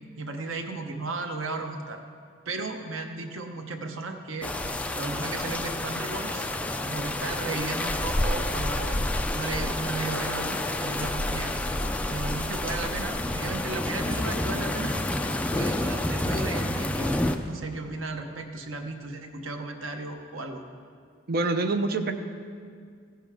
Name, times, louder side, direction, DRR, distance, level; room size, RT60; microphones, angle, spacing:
voice 1, 0.2-2.0 2.4-4.5 4.9-6.5 6.9-9.1 9.3-11.5 12.1-15.0 15.4-20.6, right 3 dB, 85° right, 5 dB, 1.0 m, -35 dB
sound 1, 4.4-17.4, left 1 dB, 5° left, 0.4 m, -29 dB
voice 2, 21.3-22.1, right 3 dB, 50° right, 8 dB, 0.6 m, -25 dB
16.0 x 10.0 x 3.6 m, 2.2 s
head